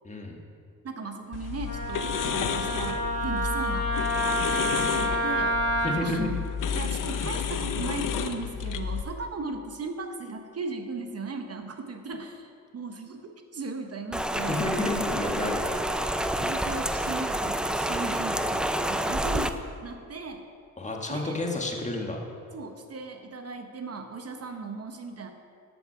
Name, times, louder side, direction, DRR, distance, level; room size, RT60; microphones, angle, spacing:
voice 1, 0.0-0.4 5.8-6.3 14.5-15.7 20.8-22.2, left 2 dB, 20° left, 1 dB, 1.6 m, -30 dB
voice 2, 0.8-3.9 4.6-6.4 6.7-14.6 15.3-15.6 16.4-20.5 21.1-21.4 22.5-25.3, right 3 dB, 45° right, 5 dB, 0.9 m, -37 dB
sound 1, 1.3-9.0, left 7 dB, 60° left, 0.8 m, -31 dB
Wind instrument woodwind instrument, 1.7-6.0, equal, 45° left, 2.3 m, -28 dB
Rain, 14.1-19.5, right 1 dB, 5° right, 0.4 m, -28 dB
13.0 x 5.9 x 5.9 m, 2.3 s
cardioid pair, 90°, 35 cm